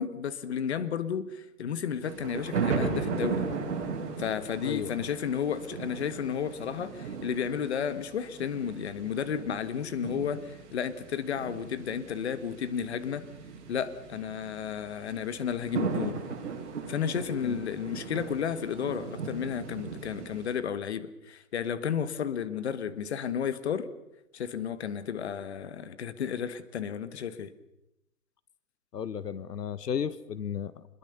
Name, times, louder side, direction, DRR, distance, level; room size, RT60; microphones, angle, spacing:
voice 1, 0.0-3.4 4.2-13.3 13.7-16.2 16.9-23.9 24.3-27.5, left 7 dB, 45° left, 13 dB, 1.6 m, -32 dB
sound 1, 2.0-20.5, right 5 dB, 45° right, 6.9 m, -37 dB
voice 2, 4.6-4.9 17.4-17.6 28.9-31.0, left 7 dB, 80° left, 17 dB, 1.4 m, -34 dB
26.5 x 21.5 x 6.8 m, 0.87 s
hypercardioid pair, 170°, 47 cm